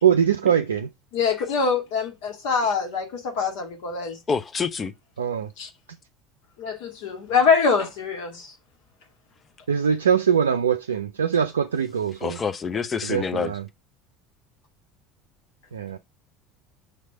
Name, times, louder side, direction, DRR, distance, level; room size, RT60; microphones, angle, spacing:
voice 1, 0.0-0.9 5.2-5.5 9.7-12.4 13.1-13.6 15.7-16.0, right 8 dB, 75° right, 0.4 m, -22 dB
voice 2, 1.1-4.2 5.6-5.7 6.6-8.5, left 5 dB, 60° left, 1.8 m, -24 dB
voice 3, 4.3-4.9 12.2-13.5, left 5 dB, 25° left, 0.8 m, -27 dB
6.6 x 3.2 x 5.6 m
figure-of-eight pair, 70°, 0 cm